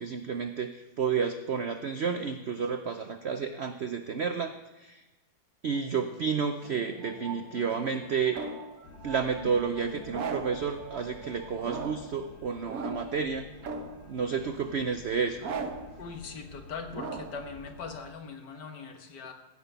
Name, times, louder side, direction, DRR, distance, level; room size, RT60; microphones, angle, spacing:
voice 1, 0.0-5.0 5.6-8.4 9.0-13.5 14.1-15.4, right 6 dB, 80° right, 7 dB, 0.5 m, -31 dB
sound 1, 5.7-12.3, right 4 dB, 30° right, 1.2 m, -47 dB
sound 2, 6.6-8.7 10.1-10.7 11.6-12.2 12.7-13.2 13.6-14.1 15.4-16.0 16.9-17.5, right 4 dB, 55° right, 1.3 m, -38 dB
sound 3, 8.8-18.0, left 4 dB, 90° left, 2.0 m, -50 dB
voice 2, 16.0-19.3, left 5 dB, 65° left, 5 dB, 1.8 m, -41 dB
15.5 x 6.1 x 6.7 m, 1.1 s
omnidirectional pair, 2.0 m